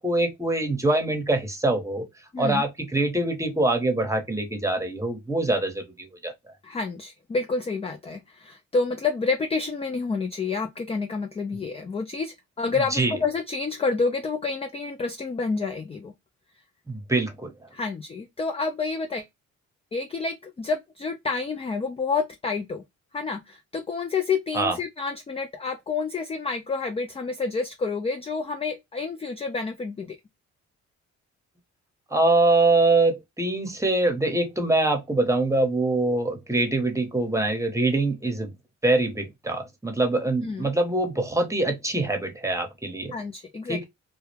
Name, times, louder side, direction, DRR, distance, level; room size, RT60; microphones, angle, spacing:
voice 1, 0.0-2.1 2.4-6.3 12.9-13.1 16.9-17.5 24.5-24.8 32.1-38.5 38.8-43.1 43.7-43.8, right 2 dB, 10° right, 0.9 m, -24 dB
voice 2, 2.3-2.6 6.6-16.1 17.7-19.3 19.9-22.8 23.1-30.2 40.4-40.7 43.1-43.8, left 4 dB, 20° left, 0.4 m, -29 dB
2.3 x 2.1 x 3.1 m
cardioid pair, 90°, 30 cm